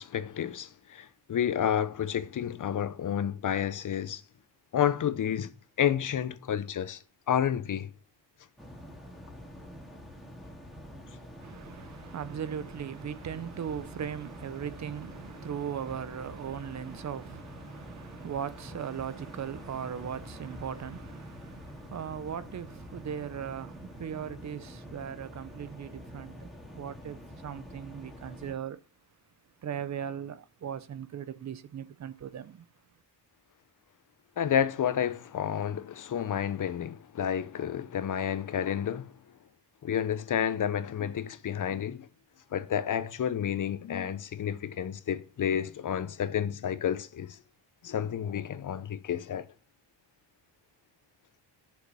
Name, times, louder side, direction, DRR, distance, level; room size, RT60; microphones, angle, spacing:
voice 1, 0.0-4.2 4.7-5.5 5.8-7.9 34.4-39.1 39.8-42.1 42.5-47.4 47.8-49.5, left 9 dB, 45° left, 0.9 m, -30 dB
sound 1, 8.6-28.5, equal, ahead, 2.1 m, -46 dB
voice 2, 11.4-26.5 26.8-28.8 29.6-32.7, right 8 dB, 40° right, 0.7 m, -38 dB
7.7 x 7.1 x 5.6 m
cardioid pair, 125°, 43 cm